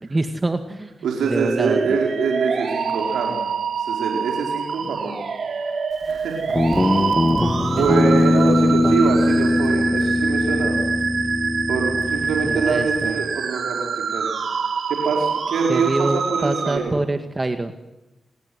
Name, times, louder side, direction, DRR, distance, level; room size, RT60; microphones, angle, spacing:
voice 1, 0.0-0.9 1.2-2.0 4.8-4.9 6.5-6.8 7.3-7.9 8.8-9.0 12.4-13.2 15.7-17.8, right 2 dB, 30° right, 8 dB, 2.0 m, -26 dB
voice 2, 1.0-3.4 3.8-5.2 6.1-6.4 7.8-10.8 11.7-14.3 14.9-16.9, right 5 dB, 90° right, 1 dB, 4.8 m, -24 dB
sound 1, 1.2-16.8, right 5 dB, 70° right, 3.5 m, -26 dB
Guitar, 6.6-13.1, left 1 dB, 25° left, 1.9 m, -20 dB
27.5 x 20.0 x 9.6 m, 1.0 s
supercardioid pair, 45°, 0 cm